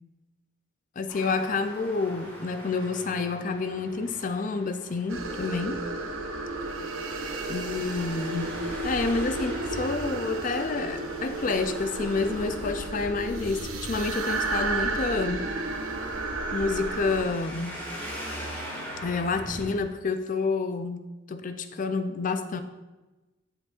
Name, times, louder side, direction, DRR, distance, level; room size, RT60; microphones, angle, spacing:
voice 1, 1.0-5.8 7.5-8.6 8.8-15.4 16.5-17.8 19.0-21.0 21.3-22.6, left 4 dB, 40° left, 9 dB, 0.4 m, -29 dB
Traffic noise roadway noise, 1.1-19.8, equal, 10° left, 1.6 m, -42 dB
sound 1, 5.1-17.2, right 2 dB, 75° right, 0.8 m, -32 dB
7.8 x 7.1 x 2.4 m, 1.1 s
head